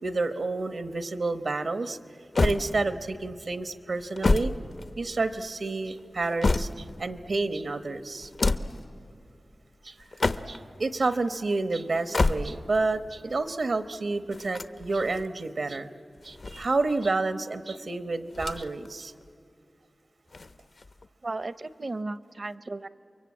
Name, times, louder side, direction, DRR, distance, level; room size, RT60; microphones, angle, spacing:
voice 1, 0.0-2.0 2.4-4.5 5.0-8.3 9.8-9.9 10.5-15.9 16.2-19.1, right 3 dB, 70° right, 10 dB, 1.0 m, -29 dB
sound 1, 2.4-3.2 4.0-5.3 6.0-7.1 8.2-8.9 10.0-10.8 11.9-12.8 14.3-15.3 16.2-17.1 18.3-18.9 19.2-19.3 20.3-21.1, left 3 dB, 65° left, 0.8 m, -29 dB
voice 2, 21.2-22.9, right 2 dB, 50° right, 15 dB, 0.7 m, -35 dB
29.0 x 23.0 x 8.7 m, 2.5 s
wide cardioid pair, 85°, 0 cm